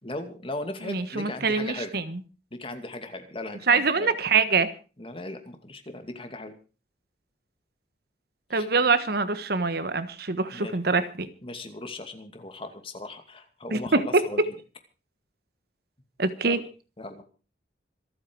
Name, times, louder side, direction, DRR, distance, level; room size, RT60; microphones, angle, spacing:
voice 1, 0.0-1.9 2.5-4.1 5.0-6.6 8.5-8.7 10.5-10.8 11.4-14.5 16.4-16.6 17.0-17.2, left 2 dB, 30° left, 7 dB, 2.5 m, -38 dB
voice 2, 0.9-2.0 3.7-4.7 8.5-11.3 13.7-14.2 16.2-16.6, right 4 dB, 60° right, 12 dB, 1.4 m, -24 dB
26.5 x 8.9 x 4.7 m, 0.35 s
head